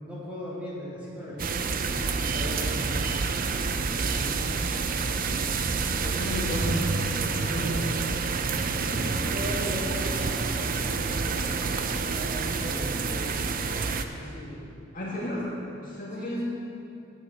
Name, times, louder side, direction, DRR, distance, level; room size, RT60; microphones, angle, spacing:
voice 1, 0.0-3.2 3.7-4.4 7.5-7.9 8.8-14.6 15.1-15.2 15.7-15.8 16.1-16.4, equal, 5° right, -9 dB, 3.2 m, -39 dB
sound 1, 1.4-14.1, right 4 dB, 40° right, 0.6 m, -28 dB
voice 2, 6.0-6.9 7.2-8.0 14.9-15.5 15.8-16.4, equal, 40° left, -6 dB, 2.5 m, -32 dB
10.5 x 9.9 x 6.4 m, 2.6 s
head